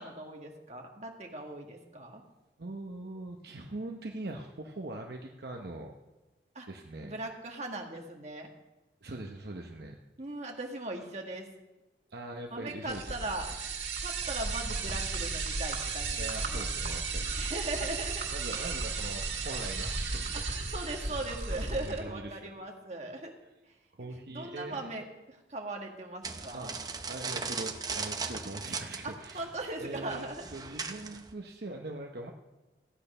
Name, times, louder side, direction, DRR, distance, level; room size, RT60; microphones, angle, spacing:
voice 1, 0.0-2.2 6.6-6.7 7.0-8.5 10.2-11.5 12.5-13.6 14.0-16.7 17.4-18.3 18.6-18.8 20.3-23.4 23.7-23.8 24.3-26.7 29.0-30.4 30.8-31.0, right 2 dB, 40° right, 1 dB, 1.7 m, -39 dB
voice 2, 2.6-5.9 6.7-7.1 9.0-10.0 12.1-13.2 16.2-17.3 18.3-21.2 21.7-22.5 23.9-24.9 26.5-26.7 27.1-29.5 29.8-32.3, right 2 dB, 65° right, 2 dB, 0.9 m, -42 dB
sound 1, 12.9-22.0, right 4 dB, 85° right, 2.3 m, -34 dB
sound 2, 26.2-31.3, right 4 dB, 20° right, 0.7 m, -38 dB
15.0 x 8.9 x 5.5 m, 1.1 s
head